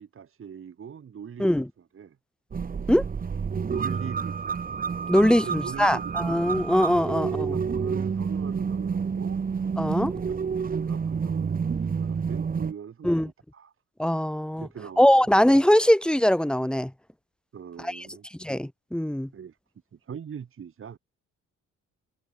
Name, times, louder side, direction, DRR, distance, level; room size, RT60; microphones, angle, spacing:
voice 1, 0.0-1.6 1.9-2.2 3.7-4.7 5.1-6.4 7.1-9.4 10.0-13.7 14.6-15.3 17.5-18.3 19.3-19.6 19.9-21.0, right 7 dB, 45° right, 1.9 m, -41 dB
sound 1, 2.5-12.7, right 6 dB, 30° right, 0.9 m, -29 dB
voice 2, 5.1-7.5 9.8-10.1 13.0-13.3 14.0-14.7 15.0-16.9 17.8-18.0 18.4-19.3, equal, 5° left, 0.9 m, -22 dB
cardioid pair, 90°, 30 cm